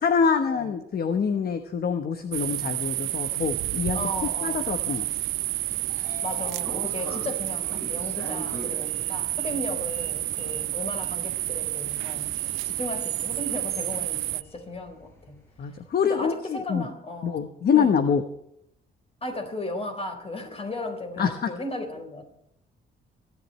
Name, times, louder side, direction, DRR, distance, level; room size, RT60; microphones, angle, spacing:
voice 1, 0.0-4.0 4.4-5.0 15.6-16.9 17.2-18.2 21.2-21.5, left 6 dB, 50° left, 7 dB, 1.1 m, -25 dB
sound 1, 2.3-14.4, right 16 dB, 90° right, 0.6 m, -30 dB
voice 2, 3.9-4.8 6.0-12.3 12.6-15.4 16.0-17.4 17.7-18.0 19.2-22.2, left 2 dB, 30° left, 5 dB, 4.1 m, -35 dB
Sliding door, 5.5-15.6, left 1 dB, 15° left, 7.6 m, -44 dB
27.0 x 10.5 x 3.2 m, 0.75 s
cardioid pair, 90°, 20 cm